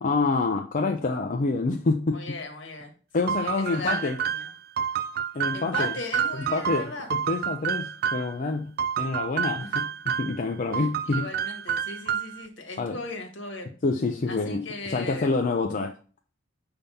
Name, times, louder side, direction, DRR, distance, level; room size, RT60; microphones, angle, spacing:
voice 1, 0.0-2.4 3.1-4.2 5.3-5.9 6.3-6.9 7.3-11.3 12.8-13.0 13.8-15.9, left 3 dB, 45° left, 3 dB, 0.5 m, -27 dB
voice 2, 2.1-2.9 3.3-4.5 5.5-7.1 9.6-9.8 10.7-13.7 14.3-15.3, left 3 dB, 70° left, 3 dB, 1.6 m, -37 dB
sound 1, 3.3-8.4 8.8-10.4 10.7-12.5, right 8 dB, 50° right, 0.3 m, -29 dB
5.8 x 3.5 x 5.4 m, 0.40 s
head